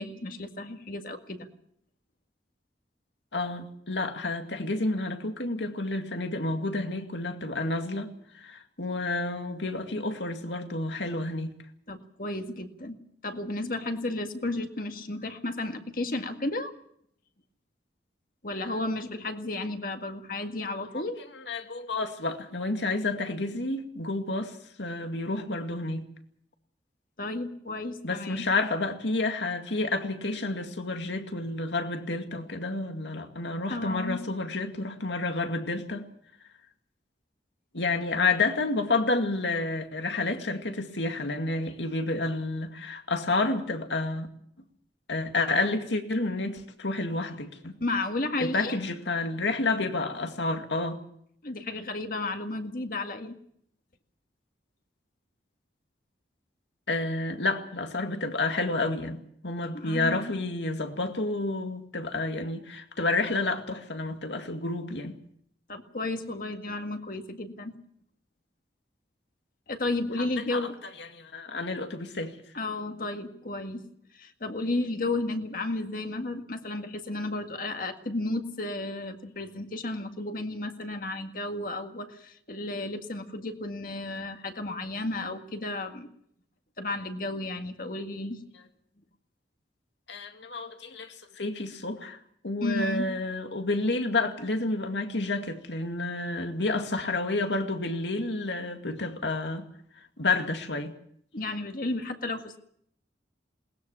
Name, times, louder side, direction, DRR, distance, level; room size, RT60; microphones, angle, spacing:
voice 1, 0.0-1.5 11.9-16.7 18.4-21.2 27.2-28.5 33.7-34.2 47.8-48.7 51.4-53.4 59.7-60.3 65.7-67.7 69.7-70.7 72.5-73.8 74.1-86.1 86.8-88.4 92.6-93.1 101.3-102.6, left 2 dB, 50° left, 1.9 m, -33 dB
voice 2, 3.3-11.6 18.6-18.7 20.9-21.0 21.3-26.1 28.0-36.1 37.7-44.3 45.1-47.7 48.4-51.0 56.9-65.2 70.2-70.3 70.5-70.7 71.0-72.4 90.1-92.2 92.4-99.7 100.2-101.0, left 2 dB, 80° left, 2.2 m, -30 dB
21.0 x 19.5 x 7.0 m
head